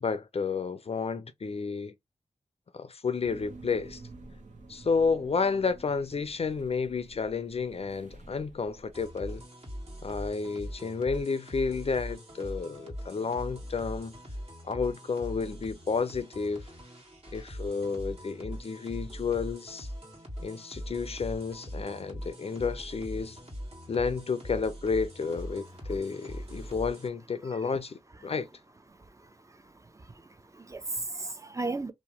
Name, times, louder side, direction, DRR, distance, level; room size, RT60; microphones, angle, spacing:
voice 1, 0.0-1.9 2.7-4.0 4.7-9.4 10.0-14.2 14.6-16.7 17.3-19.9 20.4-23.4 23.9-28.5, left 5 dB, 50° left, 0.4 m, -31 dB
sound 1, 3.2-9.1, right 2 dB, 70° right, 0.8 m, -50 dB
sound 2, 8.9-27.1, equal, 55° right, 1.5 m, -41 dB
voice 2, 29.2-31.9, right 3 dB, 25° right, 0.4 m, -37 dB
2.8 x 2.1 x 2.9 m
cardioid pair, 55°, 13 cm